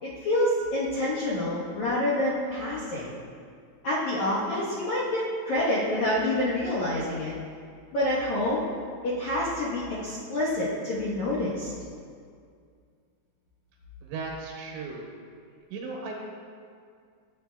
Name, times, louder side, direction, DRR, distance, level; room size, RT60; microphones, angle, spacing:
voice 1, 0.0-3.1 3.8-7.3 7.9-8.6 9.0-11.7, left 1 dB, 70° left, -8 dB, 1.8 m, -27 dB
voice 2, 14.0-15.1 15.7-16.1, right 4 dB, 80° right, -1 dB, 3.5 m, -36 dB
13.5 x 7.7 x 2.3 m, 2.2 s
omnidirectional pair, 5.3 m